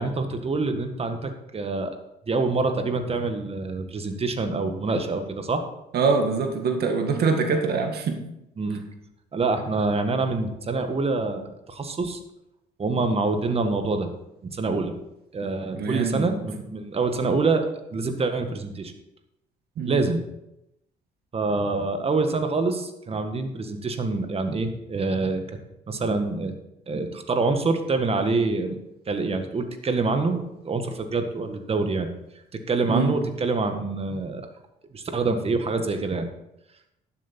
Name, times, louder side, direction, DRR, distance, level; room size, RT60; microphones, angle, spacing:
voice 1, 0.0-1.9 2.3-5.6 8.6-8.8 9.3-12.2 12.8-14.1 14.4-14.9 15.3-18.9 19.9-20.2 21.3-25.4 25.9-26.5 26.9-28.8 29.1-32.1 32.7-34.4 34.9-36.3, right 3 dB, 35° right, 7 dB, 1.6 m, -26 dB
voice 2, 5.9-8.2 15.7-16.3 19.8-20.0 32.9-33.2, right 4 dB, 65° right, 4 dB, 1.9 m, -24 dB
12.0 x 7.5 x 4.4 m, 0.86 s
supercardioid pair, 80°, 18 cm